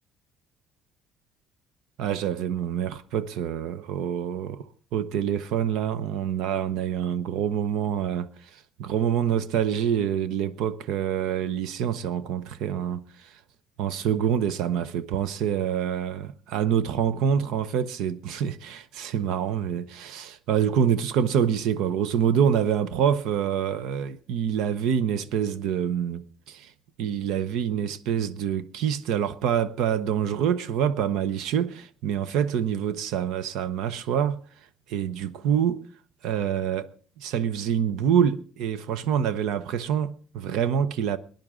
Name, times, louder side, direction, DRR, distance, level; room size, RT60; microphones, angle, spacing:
voice 1, 2.0-13.4 13.8-26.7 27.0-34.4 34.9-35.9 36.2-36.9 37.2-41.2, right 8 dB, 75° right, 0.7 m, -26 dB
19.5 x 10.5 x 3.7 m
cardioid pair, 170°, 0 cm